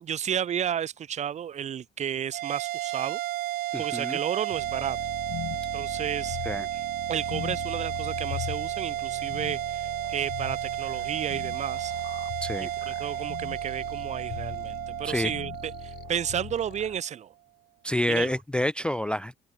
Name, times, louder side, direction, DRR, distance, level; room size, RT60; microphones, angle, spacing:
voice 1, 0.0-3.2 3.8-5.0 5.7-6.4 7.1-11.9 12.9-17.3 18.1-18.3, right 9 dB, 45° right, 0.9 m, -32 dB
sound 1, 2.3-16.9, right 15 dB, 65° right, 0.5 m, -33 dB
voice 2, 3.7-4.2 6.4-6.7 12.4-12.7 15.0-15.3 17.8-19.4, left 1 dB, 5° left, 0.3 m, -28 dB
sound 2, 4.5-17.0, left 15 dB, 75° left, 2.3 m, -40 dB
open air
cardioid pair, 110°, 17 cm